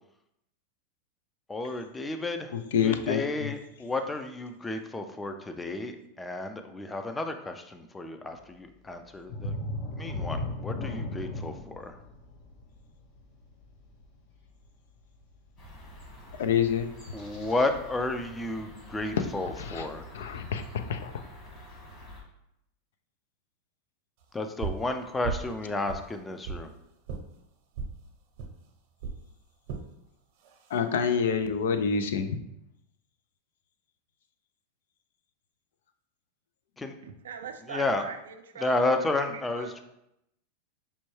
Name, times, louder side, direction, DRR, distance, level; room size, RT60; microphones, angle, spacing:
voice 1, 1.5-2.6 2.8-9.6 10.0-12.0 17.1-20.0 24.3-26.7 36.8-36.9 37.7-38.0 38.6-39.8, left 2 dB, 15° left, 7 dB, 0.4 m, -32 dB
voice 2, 2.5-3.5 16.4-16.9 19.6-19.9 20.1-21.1 30.7-32.4, left 7 dB, 80° left, 9 dB, 0.4 m, -27 dB
sound 1, 9.3-14.7 15.2-15.3 15.8-15.9, left 2 dB, 60° left, 0.8 m, -36 dB
sound 2, 15.6-22.2, left 1 dB, 35° left, 1.4 m, -47 dB
sound 3, 24.6-24.9 25.2-25.5 25.9-26.7 27.1-27.2 27.7-28.0 28.4-28.5 29.0-29.2 29.7-29.9 30.4-30.8, right 5 dB, 60° right, 0.7 m, -35 dB
voice 3, 37.0-39.8, right 7 dB, 90° right, 7 dB, 0.4 m, -41 dB
5.3 x 2.2 x 3.1 m, 0.81 s
hypercardioid pair, 120°, 0 cm